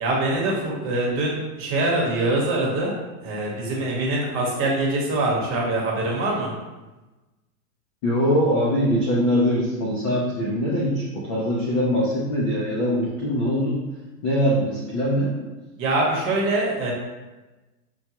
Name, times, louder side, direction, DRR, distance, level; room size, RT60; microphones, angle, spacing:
voice 1, 0.0-2.9 3.2-6.5 15.8-16.9, right 2 dB, 30° right, -3 dB, 1.0 m, -24 dB
voice 2, 8.0-13.8 14.2-15.3, equal, 25° left, -6 dB, 0.3 m, -22 dB
5.8 x 2.3 x 2.8 m, 1.1 s
supercardioid pair, 140°, 47 cm